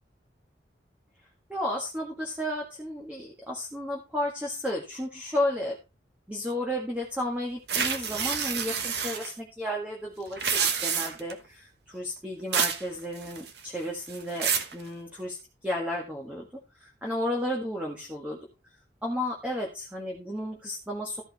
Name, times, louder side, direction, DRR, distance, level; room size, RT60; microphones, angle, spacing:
voice 1, 1.5-5.8 6.3-15.4 15.6-16.5 16.7-18.4 19.0-21.2, left 1 dB, 10° right, -1 dB, 1.7 m, -33 dB
sound 1, 7.7-9.3 10.3-11.3 12.5-12.8 13.2-13.6 14.1-14.7, right 6 dB, 70° right, 1.3 m, -28 dB
13.5 x 5.4 x 4.1 m, 0.27 s
head